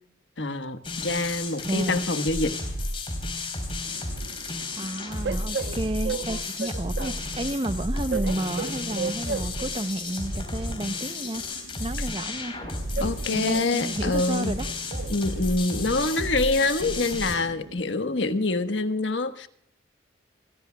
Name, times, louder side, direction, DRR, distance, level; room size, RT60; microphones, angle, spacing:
voice 1, 0.4-2.6 13.0-14.5 15.1-19.5, left 2 dB, 80° left, 8 dB, 1.3 m, -26 dB
sound 1, 0.8-17.4, left 2 dB, 30° left, 4.1 m, -32 dB
voice 2, 1.7-2.0 4.7-11.4 11.8-12.5 13.3-14.7, right 1 dB, 30° right, 11 dB, 0.7 m, -31 dB
Train, 3.8-17.8, right 4 dB, 75° right, 1.0 m, -38 dB
27.5 x 16.0 x 2.3 m, 0.64 s
head